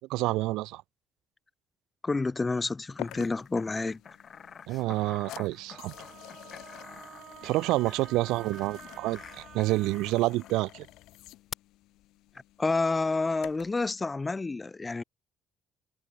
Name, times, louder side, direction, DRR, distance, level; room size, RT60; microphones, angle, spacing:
voice 1, 0.1-0.8 4.7-5.9 7.4-9.2 9.5-10.9, right 19 dB, 85° right, 0.5 m, -28 dB
voice 2, 2.0-4.0 12.6-15.0, left 3 dB, 15° left, 0.3 m, -29 dB
sound 1, 3.0-13.9, left 17 dB, 80° left, 2.1 m, -49 dB
sound 2, 3.0-10.7 11.5-11.6, left 6 dB, 30° left, 1.8 m, -48 dB
Wind instrument woodwind instrument, 5.7-10.1, right 9 dB, 45° right, 1.5 m, -49 dB
cardioid pair, 150°, 0 cm